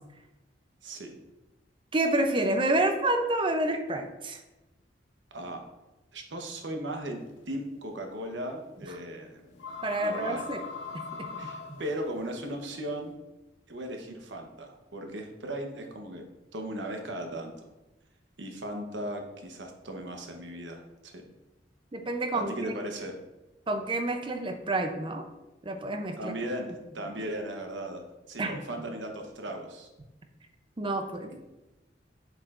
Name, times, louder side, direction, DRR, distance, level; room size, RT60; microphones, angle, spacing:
voice 1, 1.9-4.4 9.8-10.6 10.9-11.3 11.7-11.8 21.9-22.8 23.7-25.2 25.6-26.4 28.4-28.6 30.8-31.3, right 2 dB, 30° right, 6 dB, 0.6 m, -29 dB
voice 2, 6.1-9.4 10.0-10.4 11.4-13.1 13.7-16.2 16.5-17.5 18.4-21.2 22.3-23.1 26.2-29.9, right 1 dB, 90° right, 3 dB, 1.0 m, -37 dB
sound 1, 7.1-13.1, left 5 dB, 90° left, 0.8 m, -42 dB
7.6 x 4.9 x 2.5 m, 1.0 s
head